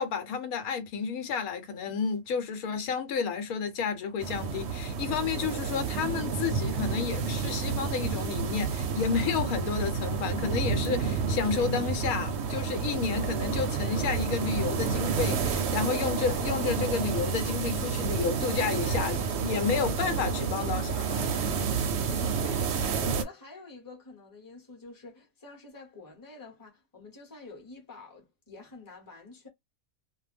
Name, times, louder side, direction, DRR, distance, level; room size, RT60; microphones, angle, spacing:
voice 1, 0.0-21.5, left 6 dB, 90° left, 1.2 m, -31 dB
sound 1, 4.2-23.2, right 5 dB, 65° right, 0.7 m, -30 dB
voice 2, 22.1-29.5, left 3 dB, 15° left, 0.9 m, -48 dB
2.5 x 2.2 x 3.2 m
omnidirectional pair, 1.5 m